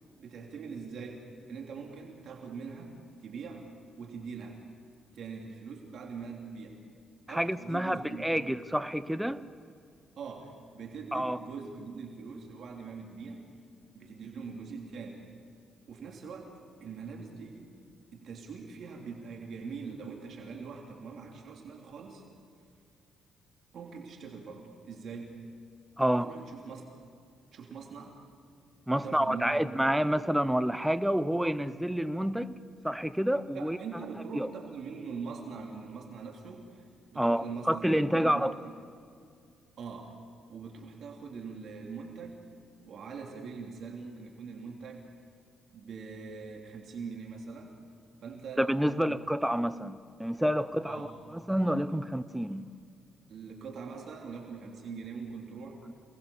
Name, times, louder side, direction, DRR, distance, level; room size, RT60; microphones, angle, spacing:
voice 1, 0.2-3.0 3.2-3.7 4.0-4.6 5.1-6.8 7.3-8.4 10.2-13.4 13.9-15.2 15.9-16.5 16.8-17.7 18.1-22.2 23.7-25.3 26.1-26.9 27.5-28.2 28.9-29.6 33.5-36.9 37.1-37.9 38.1-38.7 39.8-40.1 40.5-42.4 42.8-45.0 45.7-47.7 48.2-49.2 50.8-51.2 53.3-55.8, right 5 dB, 65° right, 3.4 m, -42 dB
voice 2, 7.3-9.4 11.1-11.4 26.0-26.3 28.9-32.6 32.8-33.8 34.3-34.5 37.2-38.5 48.6-52.7, equal, 5° right, 0.9 m, -28 dB
28.5 x 20.0 x 7.2 m
cardioid pair, 90°, 0 cm